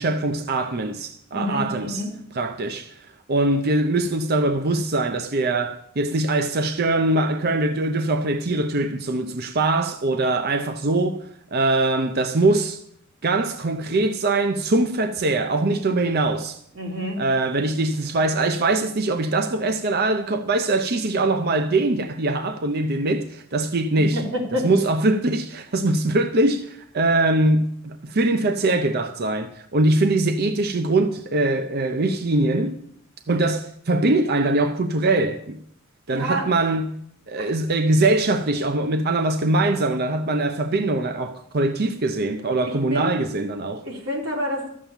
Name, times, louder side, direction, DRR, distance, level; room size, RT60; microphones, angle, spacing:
voice 1, 0.0-2.0 2.3-3.0 3.3-12.8 13.2-16.6 17.2-24.2 24.6-32.8 33.3-35.6 36.1-37.0 37.3-43.8, right 2 dB, 50° right, 0.7 m, -22 dB
voice 2, 1.3-2.1 16.8-17.2 24.1-24.7 36.1-36.5 37.4-37.5 42.9-43.1 43.8-44.7, equal, 80° right, 3.4 m, -28 dB
12.5 x 7.4 x 7.2 m
head